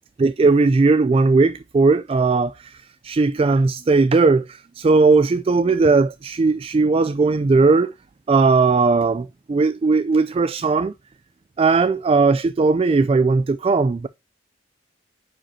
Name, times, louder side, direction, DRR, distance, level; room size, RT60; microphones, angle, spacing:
voice 1, 0.2-2.8 3.0-7.9 8.3-10.9 11.6-14.1, right 3 dB, 30° right, 0.3 m, -18 dB
8.8 x 5.2 x 2.7 m
head